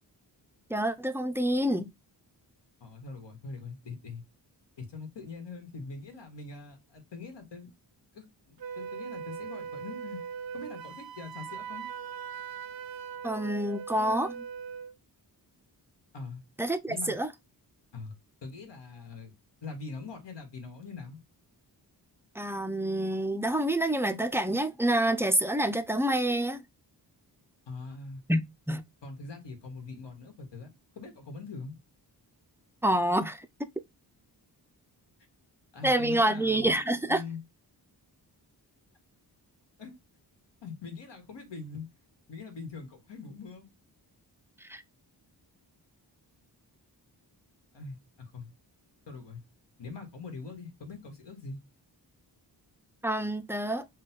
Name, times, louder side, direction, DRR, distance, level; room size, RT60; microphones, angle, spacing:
voice 1, 0.7-1.9 13.2-14.4 16.6-17.3 22.4-26.6 28.3-28.9 32.8-33.7 35.8-37.2 44.6-44.8 53.0-53.9, right 1 dB, 5° right, 0.4 m, -27 dB
voice 2, 2.8-4.2 4.8-7.7 8.1-10.2 10.5-11.9 16.1-16.4 16.9-17.2 17.9-18.1 18.4-19.3 19.6-21.2 27.7-28.2 29.0-31.8 35.7-36.8 37.1-37.4 39.8-40.0 40.6-41.8 42.3-43.7 47.7-48.5 49.1-49.4 49.8-51.6, left 4 dB, 85° left, 1.8 m, -42 dB
Wind instrument woodwind instrument, 8.6-14.9, right 7 dB, 60° right, 0.5 m, -40 dB
5.5 x 2.4 x 3.7 m
wide cardioid pair, 135°, 42 cm